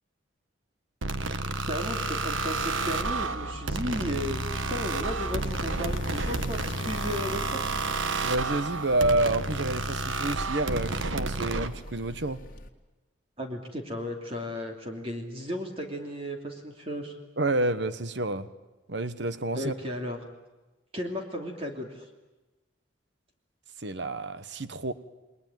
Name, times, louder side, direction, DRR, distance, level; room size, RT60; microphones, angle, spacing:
sound 1, 1.0-11.7, right 3 dB, 85° right, 1.5 m, -31 dB
voice 1, 1.7-7.6 13.4-17.1 19.5-20.2 20.9-22.0, equal, 30° right, 2 dB, 2.9 m, -34 dB
sound 2, 2.3-12.7, left 1 dB, 45° left, 1.9 m, -41 dB
voice 2, 8.2-12.4 17.4-18.5 18.9-19.7 23.8-24.9, right 2 dB, 60° right, 13 dB, 1.2 m, -29 dB
29.5 x 21.0 x 9.2 m, 1.1 s
head